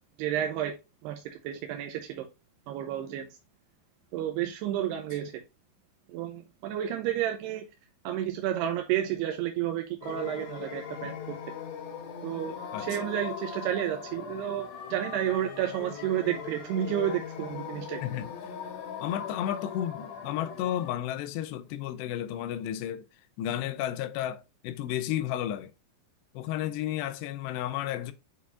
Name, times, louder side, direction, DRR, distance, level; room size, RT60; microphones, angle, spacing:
voice 1, 0.2-0.7 1.0-2.3 2.7-3.3 4.1-5.4 6.1-7.7 8.0-11.4 12.2-18.0, right 11 dB, 85° right, 2.7 m, -31 dB
sound 1, 10.0-20.9, left 7 dB, 70° left, 1.7 m, -40 dB
voice 2, 18.0-18.6 19.0-23.1 23.4-25.7 26.3-28.1, left 11 dB, 85° left, 2.8 m, -32 dB
8.1 x 4.8 x 2.4 m
omnidirectional pair, 4.9 m